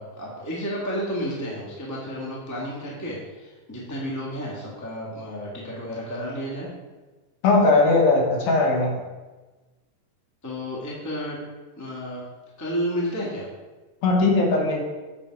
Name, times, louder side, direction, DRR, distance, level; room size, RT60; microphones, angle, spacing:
voice 1, 0.0-6.7 10.4-11.4 11.8-12.2 12.6-13.5, equal, 10° left, -5 dB, 1.0 m, -31 dB
voice 2, 7.4-9.0 14.0-14.8, left 3 dB, 70° left, -1 dB, 2.9 m, -19 dB
9.0 x 5.8 x 4.8 m, 1.2 s
omnidirectional pair, 3.9 m